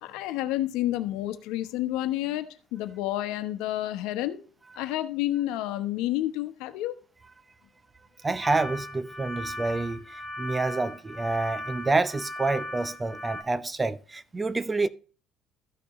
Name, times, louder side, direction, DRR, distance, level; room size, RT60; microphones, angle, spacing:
voice 1, 0.0-4.4 4.8-6.9, left 14 dB, 90° left, 1.0 m, -30 dB
voice 2, 8.2-14.9, right 3 dB, 20° right, 0.5 m, -28 dB
sound 1, 8.4-13.4, left 1 dB, 5° right, 1.5 m, -38 dB
13.5 x 6.0 x 3.1 m
cardioid pair, 115°, 0 cm